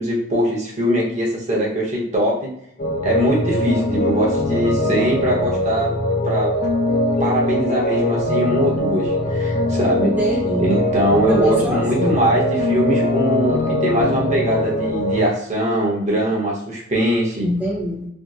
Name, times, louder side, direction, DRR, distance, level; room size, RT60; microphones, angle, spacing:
voice 1, 0.0-2.5 3.0-5.9 6.2-6.6 7.2-10.1 10.6-17.5, equal, 40° right, -3 dB, 0.9 m, -21 dB
sound 1, 2.8-15.3, left 1 dB, 45° left, 0.4 m, -21 dB
voice 2, 10.0-10.8 11.3-12.1 17.4-18.1, equal, 10° right, -4 dB, 0.5 m, -23 dB
3.5 x 2.0 x 2.6 m, 0.76 s
head